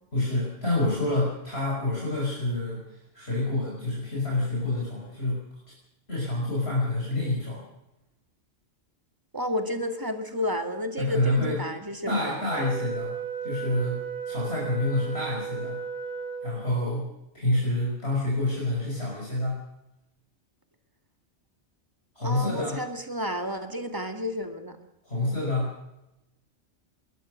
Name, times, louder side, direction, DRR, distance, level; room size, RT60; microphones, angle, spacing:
voice 1, 0.1-5.4 6.1-7.6 11.0-11.6 12.1-13.1 13.4-15.8 16.4-17.1 17.3-19.6 22.2-22.8 25.0-25.7, left 1 dB, 60° left, -4 dB, 6.0 m, -28 dB
voice 2, 9.3-12.4 22.2-24.8, left 1 dB, 15° right, 6 dB, 2.1 m, -31 dB
Wind instrument woodwind instrument, 12.5-16.9, right 6 dB, 80° left, 5.6 m, -35 dB
22.0 x 19.5 x 6.4 m, 0.91 s
omnidirectional pair, 1.2 m